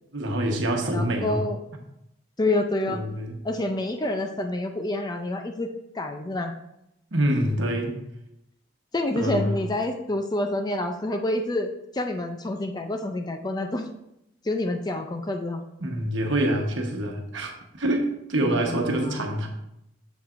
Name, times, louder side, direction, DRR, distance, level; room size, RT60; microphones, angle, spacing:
voice 1, 0.1-1.5 2.9-3.4 7.1-7.9 9.1-9.6 15.8-19.5, right 1 dB, 60° right, 2 dB, 1.1 m, -26 dB
voice 2, 0.9-1.6 2.4-3.0 3.4-6.6 8.9-13.9 14.4-15.6 18.4-19.2, left 1 dB, 20° left, 5 dB, 0.4 m, -28 dB
7.3 x 7.2 x 2.5 m, 0.83 s
head